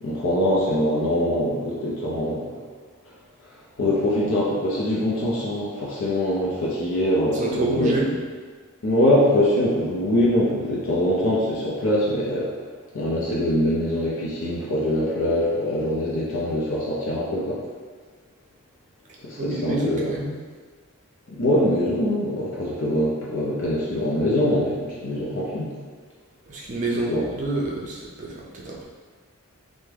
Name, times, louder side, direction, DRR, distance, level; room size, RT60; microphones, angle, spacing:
voice 1, 0.0-2.6 3.5-8.1 8.8-12.5 12.9-17.6 19.2-20.0 21.3-25.7 27.1-27.2, left 1 dB, 60° left, -6 dB, 0.5 m, -23 dB
voice 2, 7.3-8.1 19.4-20.4 26.5-28.8, right 2 dB, 35° right, -3 dB, 0.5 m, -27 dB
3.4 x 2.1 x 3.3 m, 1.5 s
head